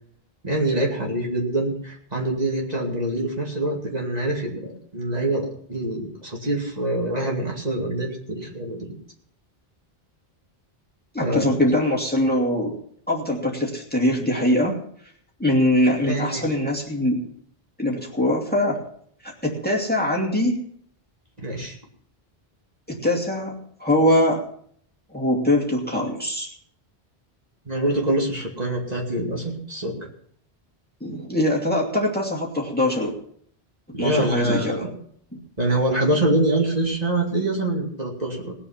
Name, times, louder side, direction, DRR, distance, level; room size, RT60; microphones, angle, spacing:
voice 1, 0.4-8.9 11.2-11.6 16.0-16.4 21.4-21.8 27.7-30.1 33.9-34.9 35.6-38.5, right 1 dB, 40° right, -2 dB, 2.5 m, -25 dB
voice 2, 11.1-12.7 13.1-14.8 15.4-17.2 17.8-18.8 19.2-20.6 22.9-23.5 23.8-24.4 25.1-26.5 31.0-33.1 34.0-34.8 35.3-35.4, left 1 dB, 10° left, -2 dB, 2.5 m, -22 dB
19.5 x 7.1 x 5.8 m, 0.63 s
omnidirectional pair, 1.0 m